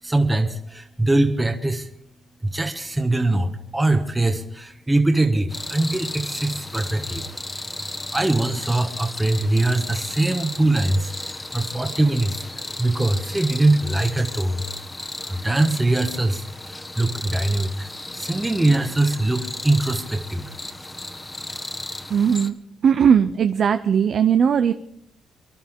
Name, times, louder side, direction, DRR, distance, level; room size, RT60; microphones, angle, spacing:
voice 1, 0.0-1.9 2.4-7.3 8.1-12.5 12.8-14.6 15.2-20.5, right 2 dB, 15° right, 4 dB, 1.3 m, -22 dB
sound 1, 5.5-22.5, left 2 dB, 15° left, 1.4 m, -34 dB
voice 2, 22.1-22.5 22.8-24.7, right 7 dB, 55° right, 9 dB, 0.6 m, -18 dB
25.0 x 11.5 x 3.7 m, 0.72 s
cardioid pair, 90°, 0 cm